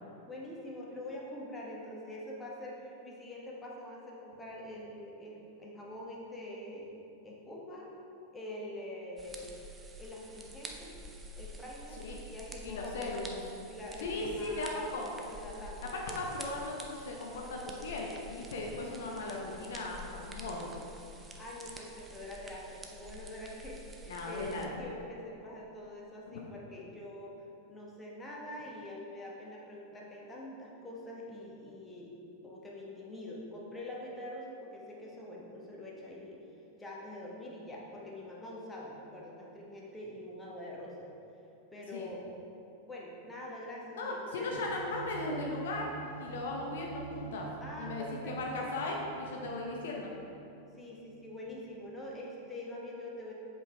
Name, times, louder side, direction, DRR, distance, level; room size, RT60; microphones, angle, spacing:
voice 1, 0.3-6.9 7.2-7.9 8.3-9.5 10.0-10.9 11.4-12.0 12.3-13.1 13.7-14.8 15.3-15.8 19.1-19.2 21.4-27.3 27.7-32.1 32.4-36.4 36.8-41.1 41.7-42.2 42.9-44.7 47.6-48.7 50.8-53.3, left 1 dB, 10° left, -4 dB, 1.2 m, -45 dB
sound 1, 9.2-24.7, equal, 15° right, 0.6 m, -48 dB
voice 2, 12.6-13.4 14.0-15.1 15.8-20.7 24.1-24.7 26.3-26.4 41.9-42.1 43.9-45.9 46.2-47.5 47.8-50.1, left 2 dB, 60° left, -1 dB, 0.7 m, -37 dB
sound 2, 44.5-52.0, right 8 dB, 65° right, 0.6 m, -47 dB
7.8 x 4.7 x 3.3 m, 2.8 s
figure-of-eight pair, 90°, 0 cm